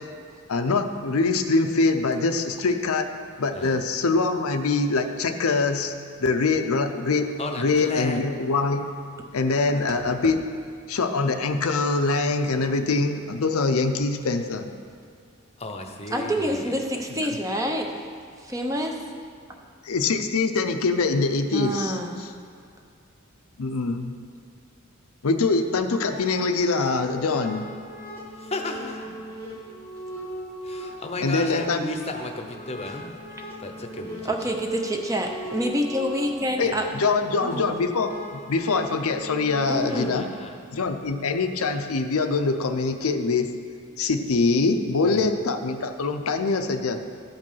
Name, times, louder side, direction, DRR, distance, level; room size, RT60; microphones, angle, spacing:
voice 1, 0.5-3.1 3.4-5.9 6.2-7.3 7.6-8.9 9.3-10.4 10.9-14.7 17.2-17.3 19.8-22.0 23.6-24.1 25.2-27.7 31.2-31.9 36.6-38.1 38.5-40.2 40.7-43.5 44.0-47.0, left 3 dB, 80° left, 6 dB, 0.6 m, -24 dB
voice 2, 7.4-8.2 15.6-16.7 28.3-29.1 30.6-33.1 33.6-34.3 36.6-36.9 39.9-40.5 45.0-45.3, left 2 dB, 30° left, 4 dB, 0.8 m, -34 dB
voice 3, 16.1-18.0 18.4-19.1 21.5-22.2 34.2-36.9 37.4-37.8 39.6-40.2, equal, 15° right, 2 dB, 0.7 m, -27 dB
sound 1, 25.8-40.2, right 1 dB, 85° right, 2.7 m, -39 dB
13.0 x 5.3 x 5.6 m, 2.2 s
head